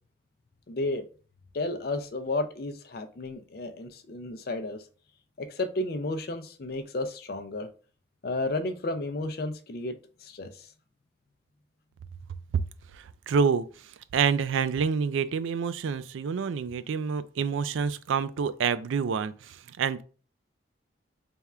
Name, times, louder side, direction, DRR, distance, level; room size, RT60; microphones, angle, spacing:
voice 1, 0.7-1.0 1.5-4.8 5.4-7.7 8.2-10.7, left 2 dB, 50° left, 0.4 m, -32 dB
voice 2, 12.9-13.7 14.1-20.0, right 6 dB, 80° right, 0.3 m, -27 dB
3.5 x 2.4 x 4.2 m
head